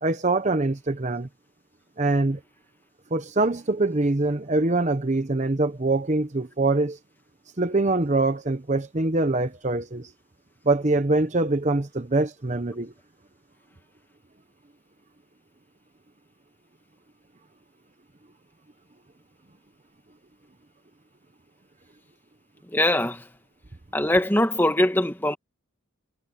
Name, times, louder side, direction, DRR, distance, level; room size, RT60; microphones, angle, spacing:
voice 1, 0.0-1.3 2.0-2.4 3.1-7.0 7.6-10.1 10.7-12.9, right 2 dB, 35° right, 0.9 m, -24 dB
voice 2, 22.7-23.2 23.9-25.4, left 1 dB, 10° left, 1.7 m, -22 dB
head